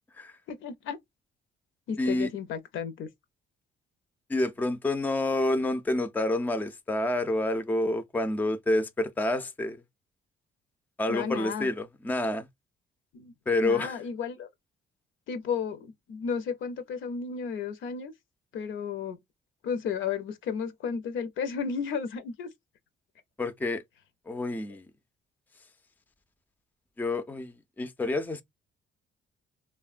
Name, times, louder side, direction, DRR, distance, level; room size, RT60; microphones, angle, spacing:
voice 1, 0.5-1.0 1.9-3.1 11.1-11.7 13.1-13.3 13.6-14.5 15.3-18.1 18.5-19.2 19.6-22.5, left 6 dB, 75° left, 0.6 m, -33 dB
voice 2, 2.0-2.3 4.3-9.8 11.0-12.5 13.5-14.0 23.4-23.8 24.3-24.9 27.0-28.4, left 2 dB, 10° left, 0.4 m, -28 dB
3.1 x 2.1 x 2.4 m
cardioid pair, 90°, 20 cm